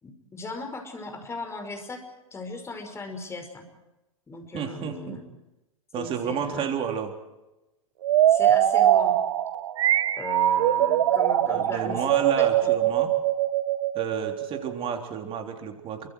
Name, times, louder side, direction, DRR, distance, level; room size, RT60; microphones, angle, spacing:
voice 1, 0.0-2.0 2.3-3.7 4.3-5.2 5.9-6.7 8.3-9.2 10.2-12.8, left 3 dB, 15° left, 5 dB, 5.4 m, -37 dB
voice 2, 4.5-5.2 5.9-7.2 11.5-13.1 13.9-16.1, right 7 dB, 30° right, 4 dB, 3.6 m, -31 dB
sound 1, 8.0-14.7, right 12 dB, 65° right, 1.4 m, -22 dB
29.0 x 24.5 x 4.7 m, 0.98 s
hypercardioid pair, 105°, 17 cm